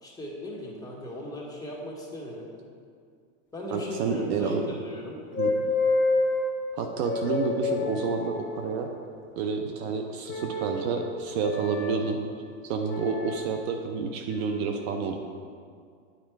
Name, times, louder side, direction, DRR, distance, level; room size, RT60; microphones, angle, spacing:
voice 1, 0.0-2.5 3.5-5.2, left 1 dB, 10° left, -4 dB, 1.6 m, -37 dB
voice 2, 3.7-4.6 5.4-5.5 6.7-8.9 9.4-12.2 12.6-15.2, right 5 dB, 50° right, 4 dB, 0.7 m, -29 dB
sound 1, 5.3-6.5 7.0-8.7 10.3-10.8 11.4-12.0 12.9-13.4 14.3-14.6, left 3 dB, 25° left, 1.3 m, -28 dB
9.0 x 4.4 x 4.6 m, 2.2 s
hypercardioid pair, 110°, 40 cm